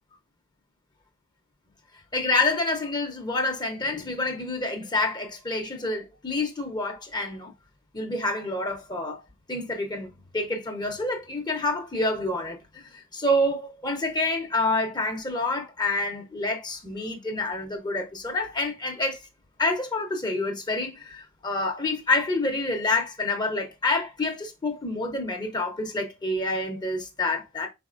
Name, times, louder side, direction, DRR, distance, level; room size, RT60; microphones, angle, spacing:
voice 1, 2.1-7.5 7.9-9.2 9.5-10.1 10.3-19.2 19.6-27.7, left 2 dB, 20° left, 0.7 m, -28 dB
5.1 x 4.1 x 2.5 m
head